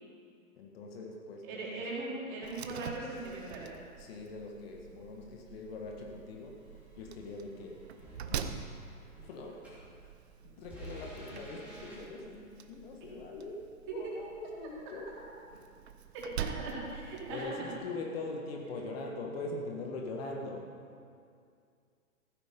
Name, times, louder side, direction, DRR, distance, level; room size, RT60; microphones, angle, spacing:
voice 1, 0.6-1.8 4.0-6.6 7.0-8.5 9.2-9.6 10.4-15.1 17.3-20.7, left 2 dB, 45° left, 1 dB, 1.6 m, -42 dB
voice 2, 1.4-3.7 16.1-17.7, right 2 dB, 30° right, -6 dB, 4.1 m, -39 dB
Slam, 2.4-17.5, right 8 dB, 50° right, 0.8 m, -45 dB
sound 1, 3.9-4.1 4.7-5.1 5.9-9.9 10.6-12.0, right 1 dB, 5° right, 3.4 m, -52 dB
15.5 x 9.2 x 5.4 m, 2.3 s
figure-of-eight pair, 125°, 43 cm